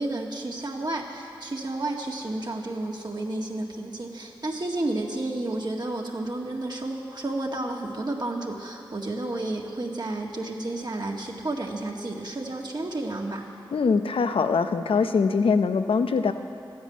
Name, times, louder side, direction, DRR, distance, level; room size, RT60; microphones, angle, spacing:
voice 1, 0.0-13.5, right 2 dB, 50° right, 0 dB, 1.9 m, -31 dB
voice 2, 13.7-16.3, left 5 dB, 85° left, 9 dB, 0.6 m, -23 dB
12.5 x 9.5 x 9.4 m, 2.4 s
cardioid pair, 40°, 9 cm